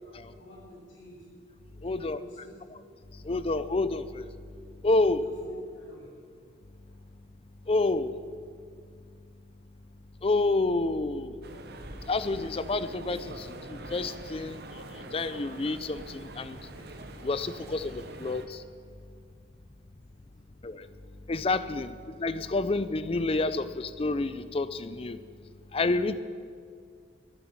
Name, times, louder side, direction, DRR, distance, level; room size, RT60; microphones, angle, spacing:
voice 1, 0.0-1.2 1.7-2.6 5.2-6.2 6.9-7.0 20.3-20.4, right 1 dB, 75° left, -9 dB, 4.7 m, -49 dB
voice 2, 1.8-2.2 3.2-4.3 4.8-5.3 7.7-8.1 10.2-11.4 12.1-14.6 15.1-16.6 17.2-18.6 20.6-20.9 21.3-25.2 25.7-26.2, left 2 dB, 30° left, 13 dB, 0.5 m, -29 dB
sound 1, 11.4-18.5, right 2 dB, 55° right, 1.1 m, -44 dB
11.0 x 9.7 x 9.1 m, 2.2 s
head